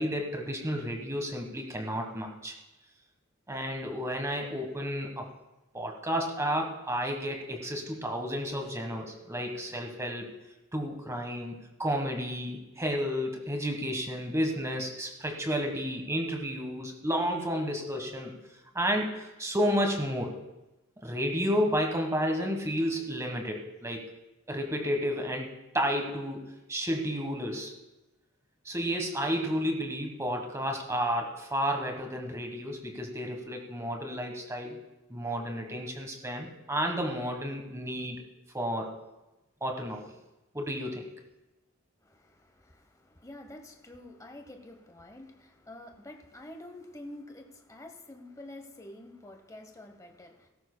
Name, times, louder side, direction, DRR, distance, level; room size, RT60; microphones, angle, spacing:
voice 1, 0.0-2.5 3.5-5.3 5.7-10.3 10.7-11.5 11.8-18.3 18.7-20.3 21.0-24.0 24.5-27.7 28.6-34.8 35.1-38.3 38.5-38.9 39.6-40.1 40.5-41.1, equal, 15° right, 3 dB, 1.3 m, -31 dB
voice 2, 42.0-50.5, left 1 dB, 15° left, 4 dB, 0.9 m, -48 dB
16.5 x 13.5 x 2.2 m, 1.0 s
head